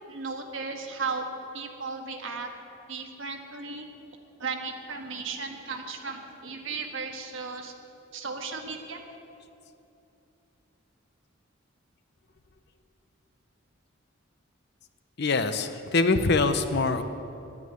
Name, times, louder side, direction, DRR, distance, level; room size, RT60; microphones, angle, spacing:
voice 1, 0.1-1.3 1.5-2.5 2.9-3.8 4.4-7.7 8.1-9.0, right 4 dB, 65° right, 3 dB, 1.5 m, -35 dB
voice 2, 15.2-17.0, left 3 dB, 55° left, 10 dB, 0.7 m, -24 dB
10.5 x 9.5 x 9.5 m, 2.8 s
head